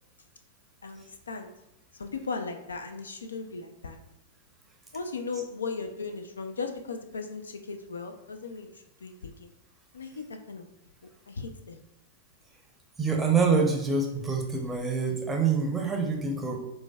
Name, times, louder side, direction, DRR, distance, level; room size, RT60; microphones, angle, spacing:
voice 1, 0.8-1.5 2.0-4.0 4.9-9.5 9.9-10.7 11.3-11.8, left 4 dB, 75° left, 6 dB, 0.3 m, -37 dB
voice 2, 13.0-16.6, right 4 dB, 10° right, 1 dB, 0.6 m, -26 dB
4.5 x 2.1 x 2.2 m, 0.95 s
figure-of-eight pair, 100°, 0 cm